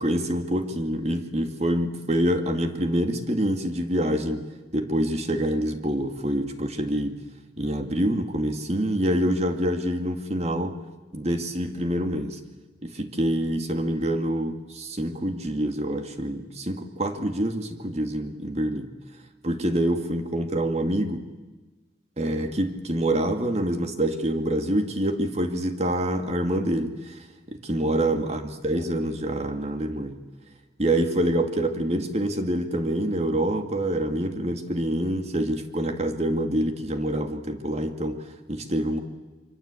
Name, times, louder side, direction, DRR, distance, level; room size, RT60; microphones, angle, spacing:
voice 1, 0.0-4.4 4.7-7.2 7.6-10.8 11.1-12.4 12.8-18.9 19.4-21.3 22.2-30.2 30.8-39.0, right 1 dB, 35° right, 6 dB, 2.2 m, -26 dB
25.5 x 25.0 x 8.4 m, 1.2 s
head